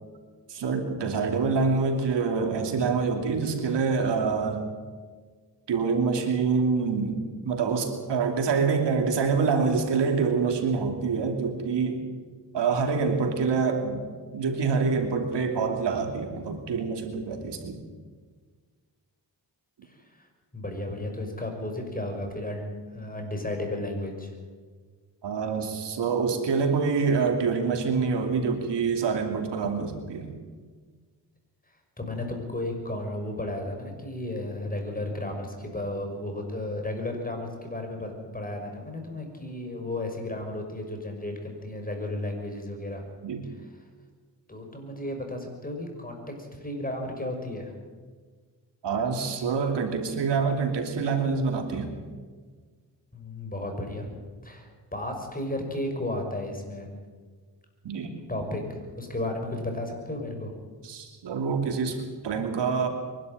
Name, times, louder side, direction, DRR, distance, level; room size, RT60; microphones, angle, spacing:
voice 1, 0.5-4.6 5.7-12.0 12.5-14.0 14.3-17.8 25.2-30.3 43.2-43.4 48.8-51.9 57.8-58.1 60.8-62.9, right 5 dB, 85° right, 4 dB, 2.8 m, -26 dB
voice 2, 19.9-20.3 20.5-24.3 32.0-43.0 44.5-47.7 53.1-54.1 54.4-56.9 58.3-60.5, left 1 dB, 20° left, 3 dB, 6.0 m, -33 dB
23.0 x 12.5 x 9.2 m, 1.5 s
cardioid pair, 65°, 42 cm